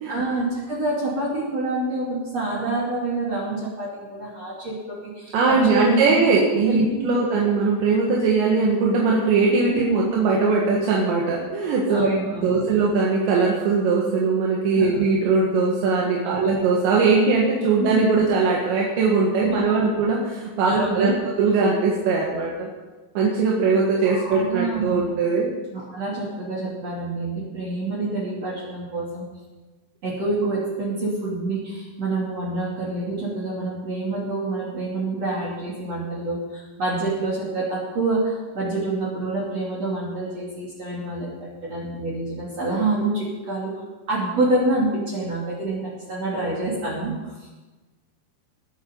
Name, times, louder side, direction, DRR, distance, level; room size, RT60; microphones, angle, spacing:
voice 1, 0.1-6.2 6.7-7.2 9.7-10.1 11.9-12.6 14.8-15.0 16.2-16.4 17.8-18.4 19.4-19.8 20.6-21.2 24.0-25.1 25.7-29.3 30.0-43.7 44.1-47.5, right 2 dB, 40° right, -5 dB, 3.5 m, -27 dB
voice 2, 5.3-21.1 21.4-22.7 23.2-25.5, right 4 dB, 75° right, -2 dB, 3.8 m, -20 dB
20.5 x 8.8 x 5.4 m, 1.2 s
omnidirectional pair, 5.2 m